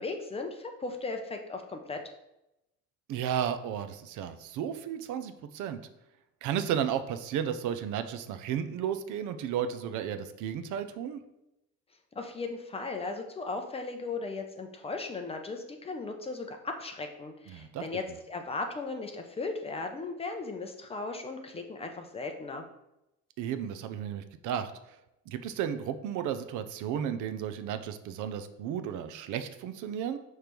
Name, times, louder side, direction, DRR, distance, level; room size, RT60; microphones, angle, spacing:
voice 1, 0.0-2.0 12.1-22.7, left 3 dB, 20° left, 4 dB, 0.5 m, -37 dB
voice 2, 3.1-5.8 6.4-11.2 17.5-17.8 23.4-24.7 25.3-30.2, right 9 dB, 70° right, 10 dB, 0.6 m, -33 dB
5.9 x 3.2 x 5.1 m, 0.88 s
cardioid pair, 165°, 32 cm